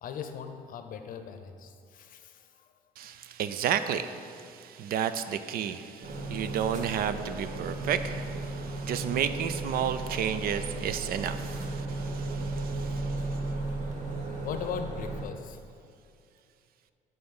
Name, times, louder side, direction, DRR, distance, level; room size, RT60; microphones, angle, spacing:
voice 1, 0.0-2.5 14.4-15.6, left 7 dB, 55° left, 7 dB, 0.7 m, -39 dB
voice 2, 3.0-13.2, right 8 dB, 60° right, 11 dB, 0.4 m, -32 dB
sound 1, 6.0-15.2, right 2 dB, 45° right, 1.2 m, -35 dB
9.7 x 3.9 x 5.4 m, 2.4 s
cardioid pair, 110°, 17 cm